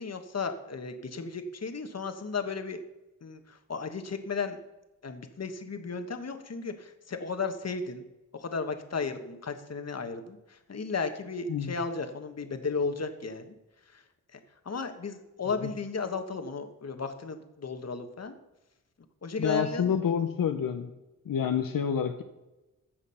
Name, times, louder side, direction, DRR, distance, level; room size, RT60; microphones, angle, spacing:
voice 1, 0.0-2.8 3.2-4.6 5.0-8.0 8.3-13.5 13.9-14.0 14.3-14.4 14.6-18.3 19.2-20.0, left 4 dB, 50° left, 7 dB, 1.3 m, -34 dB
voice 2, 19.4-20.9 21.3-22.2, left 8 dB, 80° left, 6 dB, 0.8 m, -28 dB
15.0 x 6.3 x 5.6 m, 1.0 s
wide cardioid pair, 80°, 33 cm